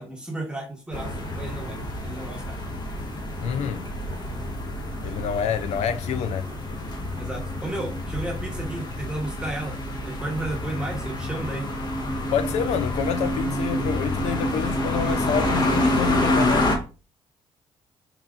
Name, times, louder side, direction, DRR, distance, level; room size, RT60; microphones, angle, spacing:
voice 1, 0.0-2.6 7.2-9.8 10.0-11.7, right 1 dB, 10° right, 1.0 m, -33 dB
sound 1, 0.9-16.8, left 1 dB, 40° left, 1.0 m, -27 dB
voice 2, 3.4-3.9 5.0-6.5 12.3-16.8, left 8 dB, 75° left, 0.4 m, -28 dB
4.8 x 2.8 x 2.4 m
cardioid pair, 80°, 11 cm